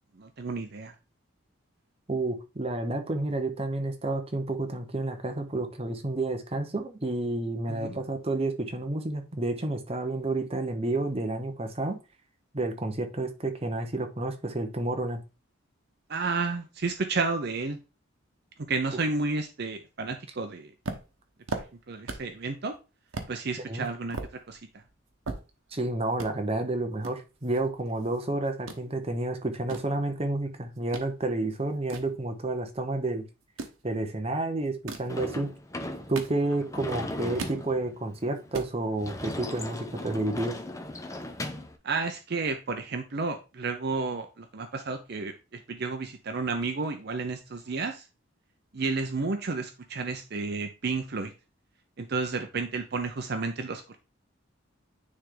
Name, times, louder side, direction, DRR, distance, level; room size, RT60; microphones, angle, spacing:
voice 1, 0.2-0.9 7.7-7.9 16.1-17.8 18.6-20.7 21.5-22.8 23.3-24.2 24.5-24.6 41.8-48.1 48.7-51.3 52.0-54.0, right 4 dB, 50° right, 7 dB, 0.6 m, -31 dB
voice 2, 2.1-12.0 12.5-15.2 23.7-23.9 25.7-33.2 33.8-35.5 36.1-40.6, right 2 dB, 30° right, 5 dB, 0.9 m, -30 dB
sound 1, 20.8-22.4 22.7-22.8 23.1-23.3 23.8-25.8 26.1-26.3 27.0-28.2 28.5-28.8 29.4-31.1 31.5-32.8 33.4-33.8 34.6-35.1 35.8-36.8 37.1-37.6 38.0-38.1 38.3-38.7, right 3 dB, 80° right, 1.1 m, -38 dB
Sliding door / Slam, 35.1-41.8, left 1 dB, 15° left, 0.6 m, -38 dB
9.5 x 3.4 x 3.8 m, 0.30 s
head